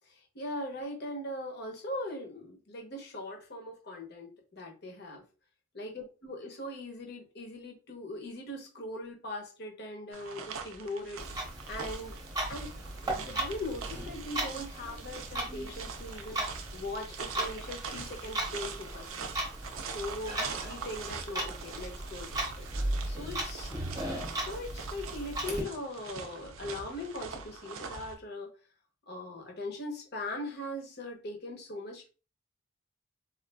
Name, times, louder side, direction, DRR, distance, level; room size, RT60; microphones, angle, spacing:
voice 1, 0.0-5.2 5.7-11.2 11.7-12.1 12.5-12.7 13.0-16.4 16.7-19.1 19.9-22.7 23.1-23.7 24.3-28.5 29.1-32.1, left 1 dB, 50° left, 2 dB, 0.9 m, -40 dB
sound 1, 10.1-28.2, right 5 dB, 85° right, 0.5 m, -43 dB
Clock, 11.2-25.6, right 1 dB, 20° right, 0.8 m, -37 dB
3.8 x 2.5 x 2.2 m, 0.34 s
head